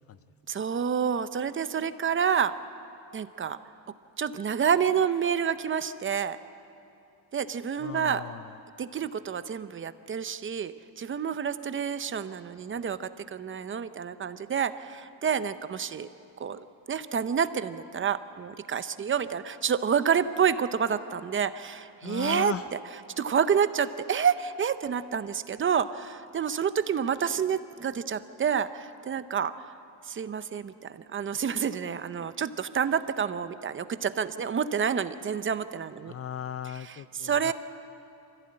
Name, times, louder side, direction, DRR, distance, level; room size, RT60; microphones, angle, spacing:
voice 1, 0.5-2.5 3.1-3.6 4.2-6.4 7.3-8.2 8.8-16.1 16.4-22.5 23.2-29.7 30.1-36.1 36.9-37.0 37.2-37.5, right 7 dB, 30° right, 12 dB, 0.7 m, -28 dB
voice 2, 7.8-8.6 22.0-22.7 36.1-37.5, left 9 dB, 40° left, 14 dB, 0.4 m, -37 dB
24.5 x 15.5 x 8.8 m, 2.7 s
cardioid pair, 135°, 39 cm